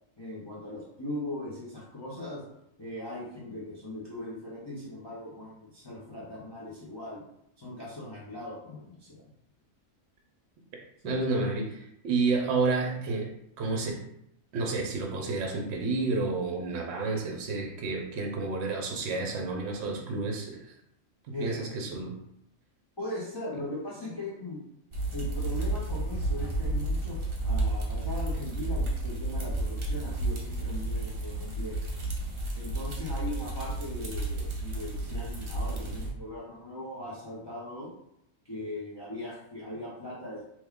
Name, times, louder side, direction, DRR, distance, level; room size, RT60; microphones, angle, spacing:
voice 1, 0.2-2.4 2.8-7.2 7.6-9.2 11.0-11.2 21.3-21.8 23.0-24.6 25.1-31.8 32.5-37.9 38.4-40.4, left 1 dB, 30° left, -8 dB, 0.5 m, -39 dB
voice 2, 11.0-13.3 13.6-14.0 14.5-20.7 21.3-22.1, right 3 dB, 60° right, 1 dB, 0.8 m, -30 dB
sound 1, 24.9-36.1, right 2 dB, 45° right, 0.4 m, -31 dB
3.0 x 2.3 x 3.5 m, 0.77 s
omnidirectional pair, 1.4 m